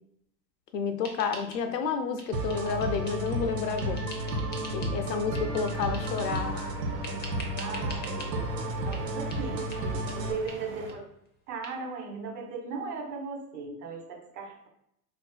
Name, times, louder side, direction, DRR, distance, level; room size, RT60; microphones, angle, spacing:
voice 1, 0.7-4.0 4.7-6.7, left 6 dB, 80° left, 8 dB, 0.6 m, -30 dB
sound 1, 1.0-1.9 2.2-3.4 3.8-5.0 5.3-6.5 7.0-8.3 8.9-9.0 9.3-9.4 9.7-9.8 10.1-10.2 10.5-10.6 10.9-11.0 11.3-11.4 11.6-11.7, left 1 dB, 20° left, 0.7 m, -44 dB
sound 2, 2.3-10.3, right 1 dB, 85° right, 0.8 m, -32 dB
sound 3, 5.4-10.9, right 3 dB, 25° right, 0.5 m, -45 dB
voice 2, 5.5-5.8 7.6-9.6 10.1-11.0 11.5-14.7, right 4 dB, 70° right, 0 dB, 1.4 m, -38 dB
4.3 x 2.5 x 2.2 m, 0.76 s
hypercardioid pair, 90°, 48 cm